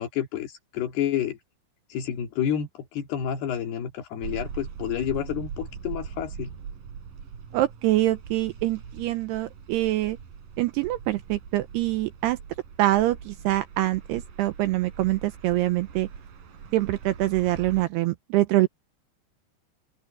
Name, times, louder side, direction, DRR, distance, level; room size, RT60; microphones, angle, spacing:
voice 1, 0.0-1.4 1.9-6.5, left 9 dB, 65° left, 4.0 m, -29 dB
sound 1, 4.2-17.9, right 7 dB, 50° right, 4.7 m, -41 dB
voice 2, 7.5-10.2 10.6-12.4 12.8-16.1 16.7-18.7, right 16 dB, 85° right, 2.5 m, -25 dB
open air
omnidirectional pair, 5.3 m